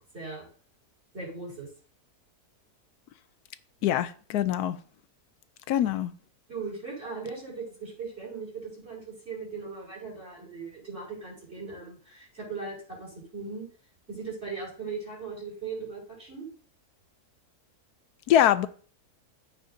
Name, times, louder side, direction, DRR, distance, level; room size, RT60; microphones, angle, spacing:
voice 1, 0.1-0.5 1.1-1.7 6.5-13.6 14.1-16.5, right 4 dB, 45° right, 5.1 m, -38 dB
voice 2, 3.8-4.8 5.7-6.1 18.3-18.7, left 11 dB, 80° left, 1.1 m, -23 dB
14.0 x 4.9 x 2.7 m
omnidirectional pair, 1.7 m